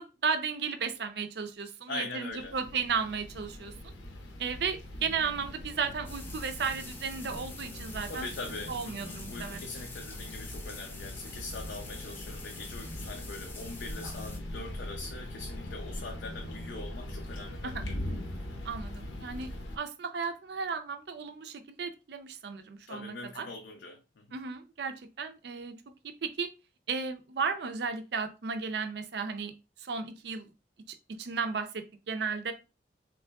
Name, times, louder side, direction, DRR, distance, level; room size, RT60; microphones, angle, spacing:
voice 1, 0.0-3.7 4.4-9.6 17.6-17.9 18.6-19.5 19.7-23.5 24.3-25.7 26.2-26.5 26.9-30.5 30.9-32.5, right 5 dB, 60° right, 0.4 m, -34 dB
voice 2, 1.9-2.6 8.1-18.0 22.9-24.4, left 3 dB, 75° left, 0.5 m, -42 dB
sound 1, 2.3-19.8, left 1 dB, 90° left, 0.8 m, -41 dB
sound 2, 6.1-14.4, left 3 dB, 10° left, 0.4 m, -47 dB
3.5 x 3.0 x 2.2 m
head